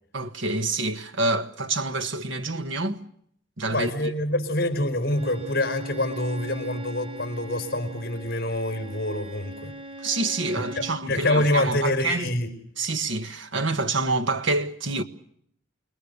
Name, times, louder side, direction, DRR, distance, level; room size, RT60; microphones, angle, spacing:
voice 1, 0.1-3.0 3.6-4.1 10.0-12.3 12.8-15.0, right 3 dB, 65° right, 1.6 m, -27 dB
voice 2, 3.7-9.7 10.7-12.5, left 1 dB, 50° left, 4.6 m, -26 dB
Bowed string instrument, 5.0-11.1, right 1 dB, 30° right, 2.3 m, -41 dB
28.0 x 21.0 x 6.8 m
head